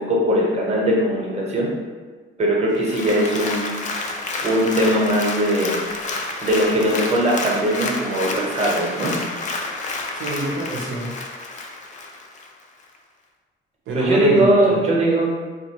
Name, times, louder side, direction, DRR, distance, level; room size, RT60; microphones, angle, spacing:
voice 1, 0.0-1.7 2.4-3.7 4.4-5.7 6.4-9.1 13.9-15.3, right 1 dB, 35° right, -3 dB, 0.9 m, -20 dB
Applause, 2.7-12.5 12.9-13.0, left 3 dB, 40° left, 0.4 m, -29 dB
voice 2, 10.1-11.2 13.9-14.9, right 1 dB, 85° right, -3 dB, 0.6 m, -27 dB
2.9 x 2.4 x 2.8 m, 1.4 s
cardioid pair, 90°, 20 cm